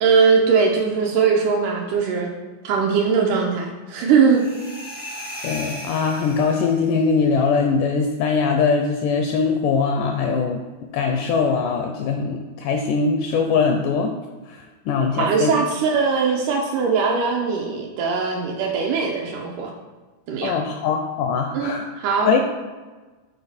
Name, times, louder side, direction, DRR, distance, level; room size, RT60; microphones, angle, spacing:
voice 1, 0.0-2.3 2.6-4.4 15.1-19.7 20.3-20.5 21.5-22.4, right 5 dB, 80° right, 0 dB, 1.9 m, -20 dB
sound 1, 4.3-7.0, equal, 10° right, 0.4 m, -36 dB
voice 2, 5.4-10.6 10.9-14.1 14.5-15.5 20.4-21.9 22.3-22.4, left 5 dB, 80° left, 4 dB, 1.8 m, -21 dB
9.9 x 4.2 x 4.2 m, 1.3 s
omnidirectional pair, 4.2 m